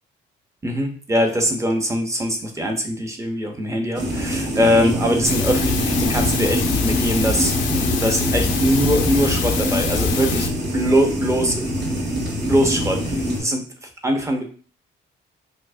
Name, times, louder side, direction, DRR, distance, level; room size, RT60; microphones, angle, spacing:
voice 1, 0.6-10.5 10.7-11.6 12.4-13.7 14.0-14.4, equal, 15° right, 3 dB, 0.8 m, -22 dB
sound 1, 3.9-13.4, equal, 60° right, 1.7 m, -24 dB
sound 2, 5.2-10.5, left 7 dB, 70° left, 0.6 m, -25 dB
4.5 x 2.1 x 2.5 m, 0.42 s
cardioid pair, 90°, 20 cm